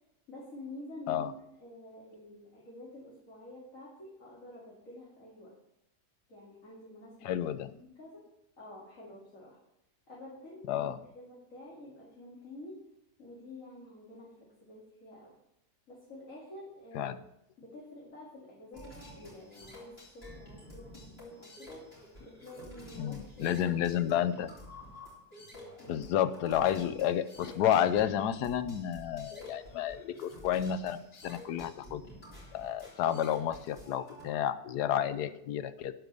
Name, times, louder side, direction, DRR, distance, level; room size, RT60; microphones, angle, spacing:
voice 1, 0.3-5.5 6.3-8.2 8.6-9.6 10.1-12.8 13.2-15.3 15.9-17.1 17.6-21.8 22.2-23.6 25.4-25.5 25.8-26.1, left 1 dB, 55° left, -6 dB, 2.8 m, -49 dB
voice 2, 7.2-7.7 10.7-11.0 16.9-17.2 23.0-24.6 25.9-32.0 32.5-35.9, left 10 dB, 85° left, 13 dB, 1.2 m, -31 dB
sound 1, 18.7-34.2, left 1 dB, 35° left, 3.6 m, -50 dB
12.0 x 5.1 x 6.7 m, 0.82 s
omnidirectional pair, 1.7 m